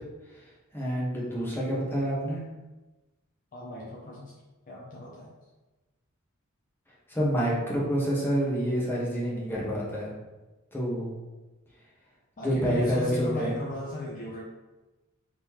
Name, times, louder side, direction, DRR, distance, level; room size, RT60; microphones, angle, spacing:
voice 1, 0.7-2.4 7.1-10.1 10.7-11.1 12.4-13.5, equal, 10° left, -6 dB, 1.2 m, -27 dB
voice 2, 3.5-4.3 4.7-5.3 12.4-14.4, left 1 dB, 40° left, -4 dB, 0.7 m, -37 dB
3.7 x 3.1 x 4.6 m, 1.1 s
head